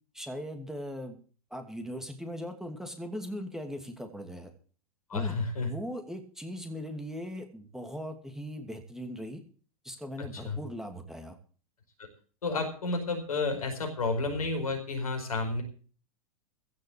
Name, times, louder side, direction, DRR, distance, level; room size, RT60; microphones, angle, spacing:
voice 1, 0.1-1.2 1.5-4.5 5.1-9.4 9.8-11.4, equal, 5° right, 6 dB, 2.7 m, -39 dB
voice 2, 5.1-5.7 10.2-10.6 12.0-12.1 12.4-15.6, left 3 dB, 80° left, 5 dB, 4.9 m, -31 dB
15.5 x 6.4 x 8.6 m, 0.41 s
hypercardioid pair, 95°, 18 cm